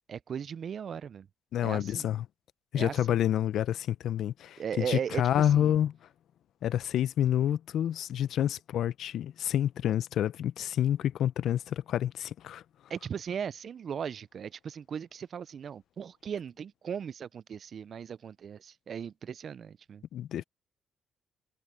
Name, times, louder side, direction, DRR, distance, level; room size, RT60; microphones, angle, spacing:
voice 1, 0.1-1.3 1.6-2.1 2.7-3.2 4.6-5.7 12.9-20.0, right 7 dB, 55° right, 0.4 m, -37 dB
voice 2, 1.5-2.3 2.7-6.0 6.6-12.6 20.1-20.4, left 11 dB, 75° left, 0.5 m, -28 dB
cardioid pair, 90°, 0 cm